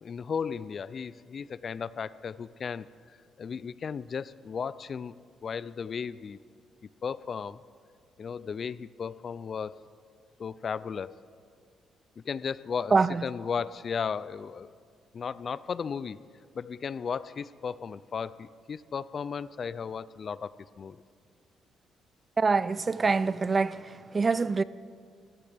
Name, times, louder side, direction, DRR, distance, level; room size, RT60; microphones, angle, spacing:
voice 1, 0.0-2.9 3.4-5.1 5.4-6.4 7.0-7.6 8.2-9.8 10.4-11.2 12.2-13.0 13.2-14.7 15.1-16.2 16.5-21.0, left 6 dB, 45° left, 0.3 m, -35 dB
voice 2, 12.9-13.3 22.4-24.6, right 4 dB, 30° right, 0.3 m, -25 dB
20.0 x 14.5 x 3.4 m
cardioid pair, 90°, 0 cm